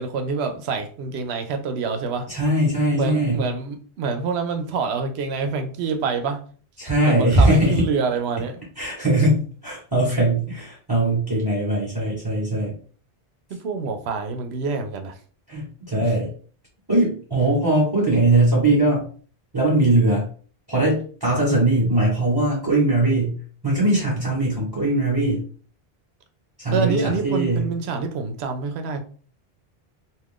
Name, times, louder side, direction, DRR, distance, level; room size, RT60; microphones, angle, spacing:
voice 1, 0.0-2.3 2.9-6.4 7.0-8.6 13.5-15.1 16.0-16.1 26.7-29.0, right 5 dB, 90° right, 6 dB, 0.8 m, -26 dB
voice 2, 2.3-3.4 6.8-7.9 8.8-12.7 15.5-16.3 16.9-19.1 19.5-20.2 20.7-23.3 23.6-25.4 26.6-27.7, right 1 dB, 25° right, -4 dB, 0.9 m, -20 dB
2.5 x 2.4 x 3.5 m, 0.42 s
omnidirectional pair, 1.0 m